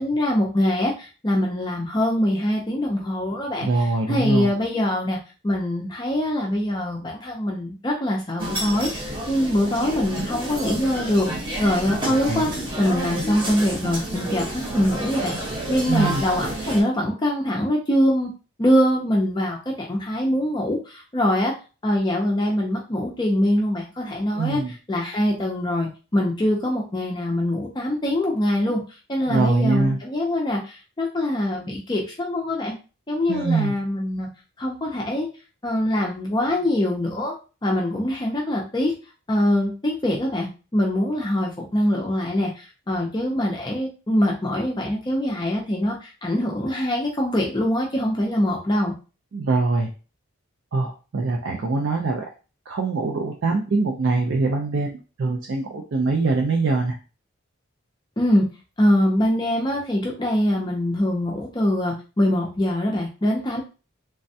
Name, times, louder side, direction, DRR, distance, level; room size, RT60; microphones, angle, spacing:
voice 1, 0.0-5.2 5.4-11.3 11.6-18.3 18.6-21.5 21.8-32.7 33.1-34.3 34.6-35.3 35.6-37.3 37.6-38.9 39.3-48.9 58.2-58.4 58.8-63.6, left 1 dB, 20° left, -1 dB, 0.4 m, -23 dB
voice 2, 3.6-4.5 12.0-12.4 15.9-16.2 24.3-24.7 29.3-30.0 33.3-33.7 49.3-49.9 50.7-52.3 52.7-54.9 55.2-57.0, right 3 dB, 55° right, 1 dB, 0.4 m, -23 dB
sound 1, 8.4-16.8, right 1 dB, 20° right, 0.8 m, -30 dB
3.3 x 2.1 x 2.6 m, 0.33 s
head